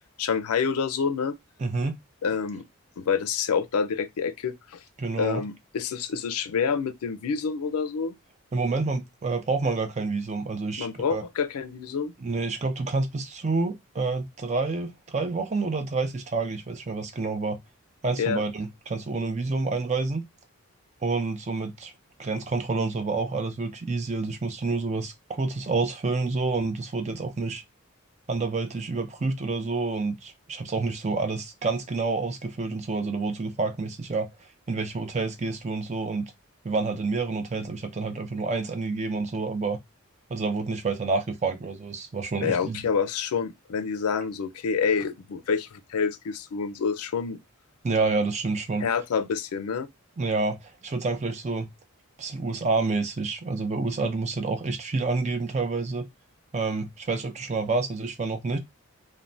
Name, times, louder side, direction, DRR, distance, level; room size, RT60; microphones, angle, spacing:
voice 1, 0.2-1.3 2.2-2.6 3.0-4.8 5.2-8.2 10.8-12.1 18.2-18.4 42.4-47.4 48.8-49.9, left 6 dB, 80° left, 0.4 m, -27 dB
voice 2, 1.6-2.0 5.0-5.4 8.5-11.2 12.2-17.6 18.0-20.2 21.0-21.9 22.2-27.6 28.3-36.3 36.6-39.8 40.3-42.8 47.8-48.9 50.2-50.6 50.8-51.7 52.2-56.0 56.5-58.6, right 3 dB, 30° right, 0.4 m, -28 dB
3.2 x 2.1 x 2.5 m
head